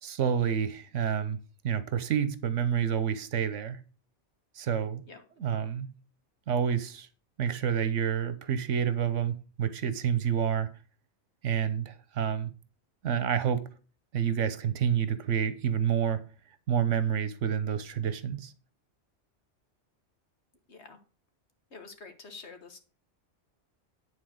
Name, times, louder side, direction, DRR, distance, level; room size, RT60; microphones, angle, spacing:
voice 1, 0.0-1.4 1.6-3.8 4.6-5.0 5.4-5.9 6.5-7.1 7.4-10.7 11.4-12.5 13.0-13.6 14.1-16.2 16.7-18.5, right 8 dB, 80° right, 1.2 m, -28 dB
voice 2, 21.7-22.8, left 4 dB, 65° left, 1.7 m, -47 dB
9.5 x 4.3 x 6.3 m
omnidirectional pair, 1.2 m